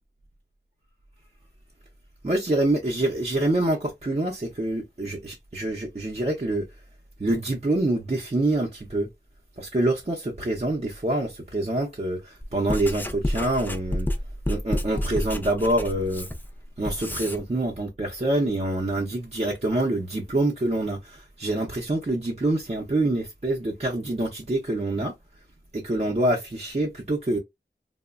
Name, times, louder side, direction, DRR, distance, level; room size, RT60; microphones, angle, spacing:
voice 1, 2.2-6.7 7.2-9.1 9.6-14.1 14.5-16.3 16.8-25.1 25.7-27.4, right 1 dB, 35° right, 0.6 m, -26 dB
Writing, 12.4-17.4, left 1 dB, 10° left, 0.4 m, -30 dB
2.9 x 2.1 x 2.3 m
wide cardioid pair, 45°, 19 cm